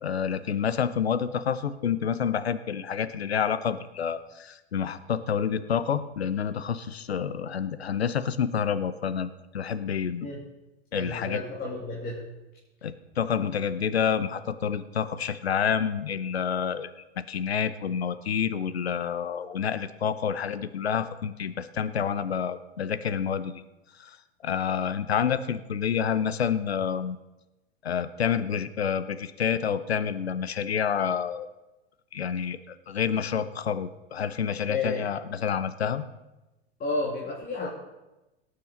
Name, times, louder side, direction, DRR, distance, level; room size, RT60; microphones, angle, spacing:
voice 1, 0.0-10.3 10.9-11.4 12.8-16.9 17.2-23.6 24.0-24.2 24.4-27.2 27.8-31.5 32.1-36.0, left 7 dB, 85° left, 14 dB, 0.8 m, -28 dB
voice 2, 10.9-12.3 34.7-35.1 36.8-37.7, left 3 dB, 30° left, -2 dB, 2.7 m, -31 dB
18.5 x 6.9 x 5.2 m, 1.0 s
hypercardioid pair, 95°, 31 cm